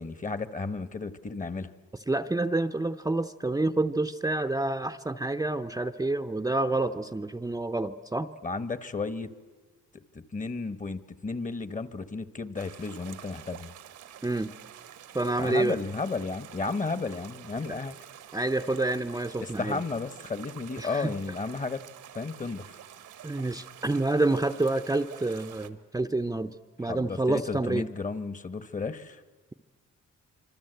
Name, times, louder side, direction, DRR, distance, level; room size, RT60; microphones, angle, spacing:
voice 1, 0.0-1.7 8.4-9.3 10.1-13.7 15.4-18.0 19.4-21.8 22.1-22.7 26.9-29.2, left 4 dB, 25° left, 13 dB, 1.2 m, -33 dB
voice 2, 2.1-8.3 14.2-14.5 15.1-15.8 18.3-19.8 20.8-21.1 23.2-26.5 26.8-27.9, right 2 dB, 10° right, 9 dB, 0.7 m, -28 dB
sound 1, 12.6-25.7, right 10 dB, 75° right, 1.4 m, -48 dB
26.0 x 24.5 x 8.0 m, 1.4 s
cardioid pair, 90°, 30 cm